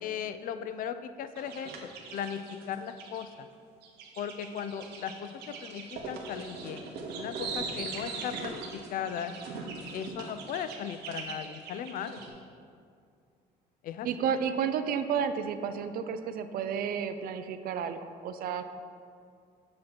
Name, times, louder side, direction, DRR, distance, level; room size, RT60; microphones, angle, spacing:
voice 1, 0.0-3.5 4.2-6.9 7.2-9.3 9.9-12.2 13.8-14.1, left 8 dB, 55° left, 11 dB, 0.4 m, -37 dB
sound 1, 1.4-3.2 3.8-12.3, right 4 dB, 80° right, 0.9 m, -40 dB
voice 2, 14.0-18.7, right 7 dB, 60° right, 10 dB, 0.4 m, -31 dB
7.5 x 2.8 x 5.9 m, 2.3 s
cardioid pair, 110°, 17 cm